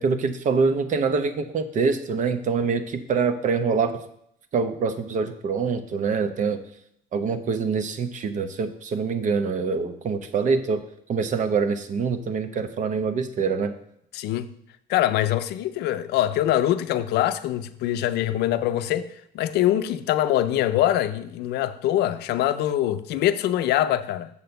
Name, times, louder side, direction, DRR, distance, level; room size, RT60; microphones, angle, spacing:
voice 1, 0.0-4.0 4.5-6.6 7.1-10.8 11.1-13.7, right 5 dB, 50° right, 0.8 m, -25 dB
voice 2, 14.1-14.5 14.9-24.3, left 12 dB, 75° left, 0.5 m, -23 dB
7.1 x 4.2 x 6.6 m
cardioid pair, 110°, 17 cm